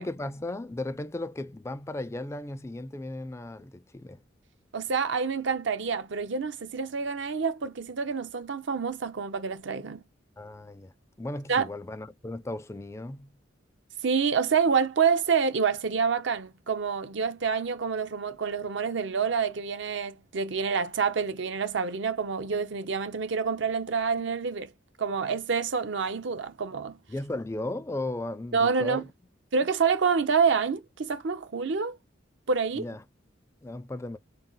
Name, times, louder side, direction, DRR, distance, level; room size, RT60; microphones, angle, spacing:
voice 1, 0.0-4.2 10.4-10.9 11.2-13.3 27.1-29.0 32.7-33.0 33.6-34.2, left 2 dB, 15° left, 0.4 m, -36 dB
voice 2, 4.7-10.0 11.5-11.7 14.0-24.7 25.0-27.0 28.5-29.0 29.5-32.0 32.5-32.9, right 5 dB, 65° right, 0.6 m, -27 dB
3.7 x 2.0 x 3.8 m
head